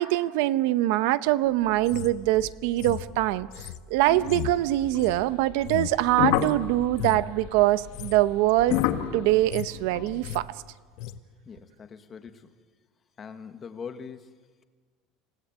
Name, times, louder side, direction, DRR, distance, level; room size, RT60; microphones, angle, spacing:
voice 1, 0.0-8.8 9.1-10.5, right 15 dB, 70° right, 15 dB, 0.8 m, -24 dB
sound 1, 1.4-9.4, right 4 dB, 45° right, 6.4 m, -52 dB
sound 2, 1.8-6.6 6.9-7.3 7.8-8.2 8.5-8.9 9.3-9.8 10.1-10.5 11.0-11.2, left 13 dB, 50° left, 1.0 m, -37 dB
sound 3, 4.1-5.2 5.8-10.3, left 11 dB, 70° left, 1.8 m, -31 dB
voice 2, 11.4-12.5 13.2-14.6, left 6 dB, 20° left, 9 dB, 1.4 m, -42 dB
27.5 x 17.5 x 8.6 m, 1.5 s
cardioid pair, 175°, 0 cm